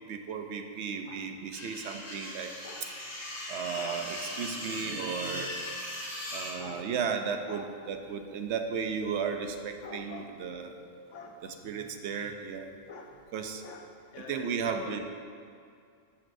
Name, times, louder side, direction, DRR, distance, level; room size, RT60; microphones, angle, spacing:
voice 1, 0.1-2.5 3.5-5.6 6.3-10.7 11.4-12.7 13.3-13.6 14.2-15.0, right 6 dB, 75° right, 6 dB, 0.9 m, -34 dB
sound 1, 1.5-6.5, left 1 dB, 50° left, 2.0 m, -39 dB
voice 2, 9.8-10.4 11.1-11.5 12.9-13.2 13.6-13.9 14.1-15.0, left 4 dB, 90° left, 3 dB, 1.2 m, -46 dB
12.5 x 6.8 x 2.6 m, 2.3 s
omnidirectional pair, 1.2 m